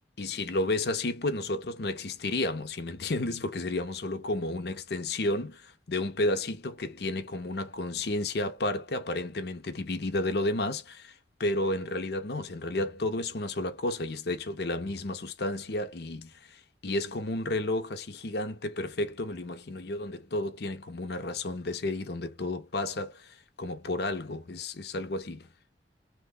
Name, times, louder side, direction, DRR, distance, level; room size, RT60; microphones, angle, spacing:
voice 1, 0.2-11.1 11.4-25.5, left 2 dB, 60° left, 0.7 m, -32 dB
3.1 x 2.2 x 3.6 m
head